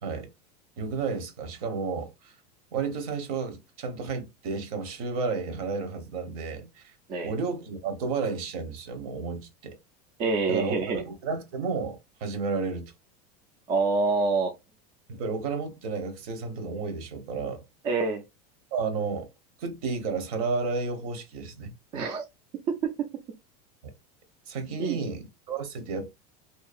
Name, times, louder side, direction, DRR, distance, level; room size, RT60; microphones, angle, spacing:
voice 1, 0.8-2.3 2.7-6.9 7.2-9.7 10.5-12.9 15.1-17.6 18.7-19.3 19.6-21.7 23.8-23.9 24.5-26.1, right 4 dB, 60° right, 0.9 m, -32 dB
voice 2, 10.2-11.0 13.7-14.5 17.8-18.2 21.9-22.2 22.7-23.1 24.8-25.0, right 4 dB, 25° right, 0.3 m, -26 dB
2.7 x 2.2 x 2.4 m
supercardioid pair, 170°, 20 cm